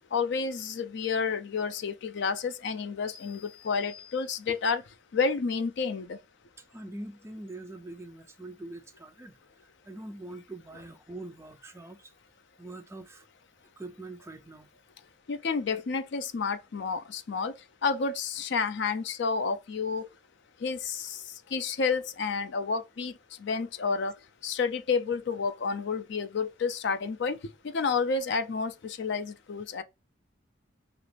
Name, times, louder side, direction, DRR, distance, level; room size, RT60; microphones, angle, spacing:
voice 1, 0.1-3.4 3.7-4.8 5.1-6.1 15.3-17.5 17.8-20.1 20.6-20.8 21.5-23.1 23.5-24.1 24.4-27.4 27.7-28.7 29.0-29.8, left 5 dB, 65° left, 0.4 m, -30 dB
sound 1, 3.1-4.9, left 9 dB, 5° left, 0.7 m, -53 dB
voice 2, 6.6-9.4 9.8-12.1 12.6-13.3 13.8-14.7, right 2 dB, 15° right, 0.3 m, -43 dB
2.9 x 2.5 x 3.2 m
head